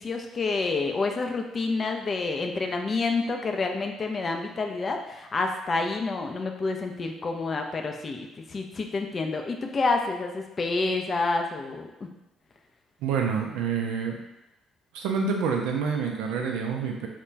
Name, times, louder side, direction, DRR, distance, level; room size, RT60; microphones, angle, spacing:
voice 1, 0.0-11.9, left 3 dB, 40° left, 4 dB, 0.3 m, -28 dB
voice 2, 13.0-14.2 14.9-17.1, right 6 dB, 65° right, 1 dB, 0.3 m, -27 dB
2.3 x 2.2 x 3.1 m, 0.96 s
figure-of-eight pair, 45°, 0 cm